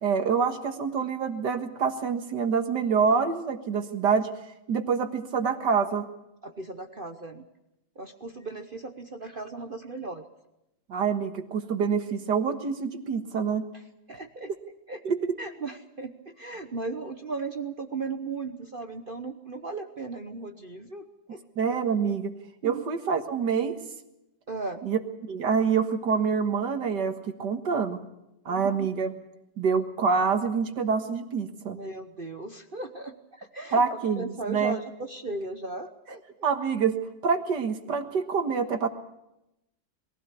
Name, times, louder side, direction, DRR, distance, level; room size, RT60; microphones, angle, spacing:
voice 1, 0.0-4.3 4.7-6.1 10.9-13.6 15.1-15.4 21.6-22.3 22.6-23.8 24.8-25.0 25.3-28.0 28.5-29.1 29.6-31.8 33.7-34.8 36.4-37.0 37.2-38.9, right 6 dB, 65° right, 7 dB, 2.1 m, -26 dB
voice 2, 6.4-7.4 8.0-10.2 13.7-13.8 14.1-14.5 14.9-15.0 15.4-21.4 22.6-22.8 24.5-24.8 28.5-28.9 31.7-33.8 34.2-36.5, right 3 dB, 40° right, 6 dB, 0.9 m, -37 dB
22.0 x 16.0 x 8.4 m, 0.89 s
omnidirectional pair, 2.0 m